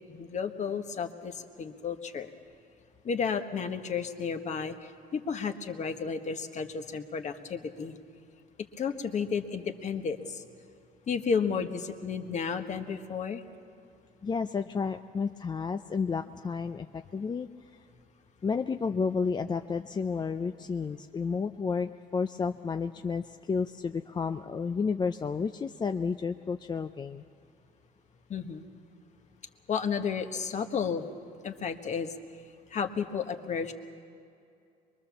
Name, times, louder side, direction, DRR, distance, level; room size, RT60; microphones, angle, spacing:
voice 1, 0.1-2.3 3.0-8.0 8.8-10.4 11.1-13.4 28.3-28.6 29.7-31.1 31.4-32.1 32.7-33.7, left 6 dB, 45° left, 6 dB, 1.5 m, -32 dB
voice 2, 14.2-17.5 18.4-27.2, left 5 dB, 25° left, 7 dB, 0.5 m, -31 dB
23.5 x 22.5 x 7.2 m, 2.5 s
cardioid pair, 110°, 17 cm